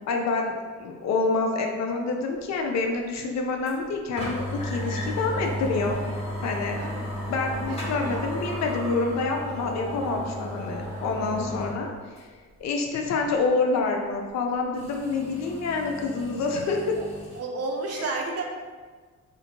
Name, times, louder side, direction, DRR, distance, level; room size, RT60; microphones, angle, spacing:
voice 1, 0.1-0.5 0.8-6.0 6.4-6.8 7.3-11.9 12.6-17.0 18.0-18.1, left 3 dB, 65° left, 2 dB, 0.5 m, -27 dB
sound 1, 3.7-3.8 4.2-11.8 12.2-12.3 14.8-17.4, equal, 20° left, 1.1 m, -33 dB
voice 2, 7.6-8.3 17.0-17.1 17.3-18.4, right 3 dB, 55° right, 1 dB, 0.6 m, -32 dB
2.6 x 2.5 x 2.8 m, 1.5 s
cardioid pair, 90°, 30 cm